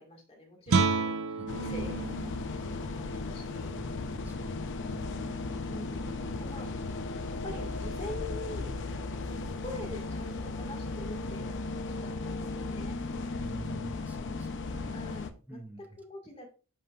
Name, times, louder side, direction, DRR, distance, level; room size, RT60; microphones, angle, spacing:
voice 1, 0.0-2.9 3.2-3.7 5.7-6.8 7.4-13.0 14.9-16.5, left 1 dB, 25° left, 1 dB, 1.8 m, -45 dB
Guitar, 0.7-6.2, right 4 dB, 65° right, 0.6 m, -33 dB
voice 2, 0.9-1.5 3.8-4.7 4.9-5.6 13.4-15.1 15.5-15.8, right 2 dB, 5° right, 6 dB, 0.8 m, -46 dB
sound 1, 1.5-15.3, left 3 dB, 55° left, 0.6 m, -36 dB
7.7 x 5.3 x 2.4 m, 0.35 s
head